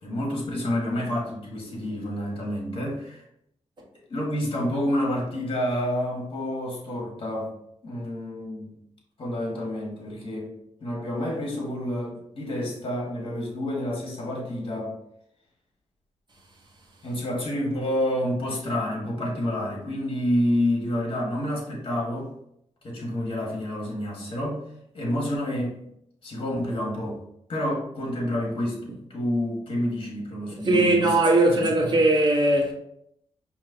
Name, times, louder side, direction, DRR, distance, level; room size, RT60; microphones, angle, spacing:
voice 1, 0.0-3.2 4.1-7.5 7.8-8.7 9.2-10.5 10.8-14.9 17.0-22.3 22.8-24.6 24.9-25.8 26.2-27.2 27.5-31.2 31.6-31.9, left 1 dB, 50° left, 1.7 m, -29 dB
voice 2, 30.7-32.7, right 2 dB, 40° right, 1.3 m, -19 dB
5.3 x 3.0 x 2.8 m
cardioid pair, 75°, 12 cm